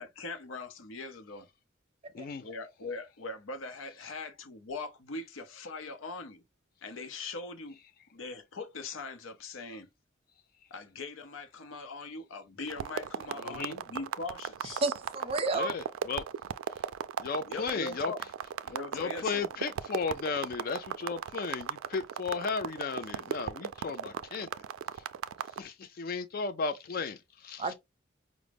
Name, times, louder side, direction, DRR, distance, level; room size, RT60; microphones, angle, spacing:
voice 1, 0.0-1.5 2.4-6.4 6.8-7.8 8.1-9.9 10.7-14.8 17.4-18.2 18.6-19.5, left 3 dB, 85° left, 0.7 m, -41 dB
sound 1, 12.7-25.6, right 8 dB, 85° right, 0.3 m, -37 dB
voice 2, 14.8-15.7 27.6-27.7, right 3 dB, 30° right, 0.5 m, -30 dB
voice 3, 15.5-16.2 17.2-18.1 18.9-24.5 25.6-27.7, left 5 dB, 45° left, 0.3 m, -35 dB
4.9 x 2.0 x 3.4 m
head